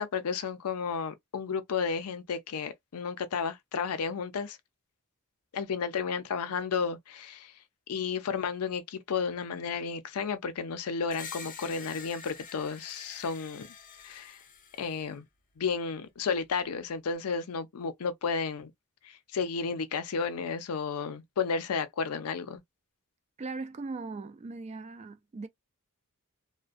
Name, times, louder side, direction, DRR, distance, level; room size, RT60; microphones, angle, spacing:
voice 1, 0.0-4.6 5.5-7.5 7.9-13.7 14.0-14.4 14.8-15.2 15.6-18.7 19.0-22.6, left 5 dB, 85° left, 0.5 m, -32 dB
Screech, 11.1-15.1, left 6 dB, 40° left, 0.5 m, -47 dB
voice 2, 23.4-25.5, right 3 dB, 30° right, 0.3 m, -39 dB
2.4 x 2.1 x 2.5 m
head